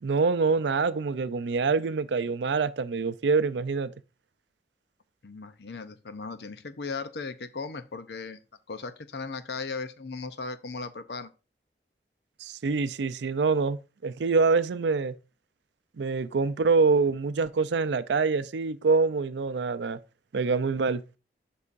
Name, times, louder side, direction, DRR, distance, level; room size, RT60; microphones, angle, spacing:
voice 1, 0.0-3.9 12.4-15.1 16.0-20.0 20.3-21.0, right 4 dB, 85° right, 0.5 m, -25 dB
voice 2, 5.2-8.4 8.7-11.3, left 4 dB, 75° left, 0.6 m, -37 dB
8.2 x 5.6 x 2.5 m
head